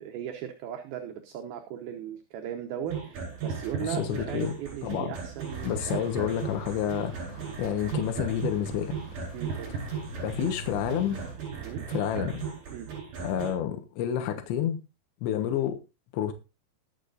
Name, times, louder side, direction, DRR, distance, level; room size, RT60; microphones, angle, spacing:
voice 1, 0.0-6.1 7.6-7.7 9.3-9.8 11.6-11.9 12.7-12.9, right 9 dB, 70° right, 2.6 m, -38 dB
sound 1, 2.9-13.5, right 6 dB, 50° right, 5.5 m, -36 dB
voice 2, 3.8-4.5 4.8-5.2 5.6-9.0 10.2-11.2 11.9-12.4 13.2-14.8 15.2-15.8 16.1-16.3, left 10 dB, 80° left, 3.4 m, -29 dB
sound 2, 5.5-11.3, right 1 dB, 15° right, 8.1 m, -43 dB
20.5 x 7.4 x 2.5 m
omnidirectional pair, 5.1 m